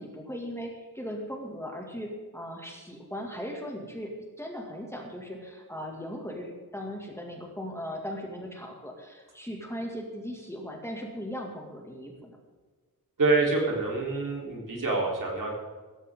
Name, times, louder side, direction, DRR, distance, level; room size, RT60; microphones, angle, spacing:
voice 1, 0.0-4.1 4.4-12.4, equal, 5° left, 0 dB, 2.2 m, -38 dB
voice 2, 13.2-15.5, right 3 dB, 60° right, -2 dB, 3.7 m, -26 dB
16.5 x 14.0 x 3.7 m, 1.4 s
wide cardioid pair, 150°, 37 cm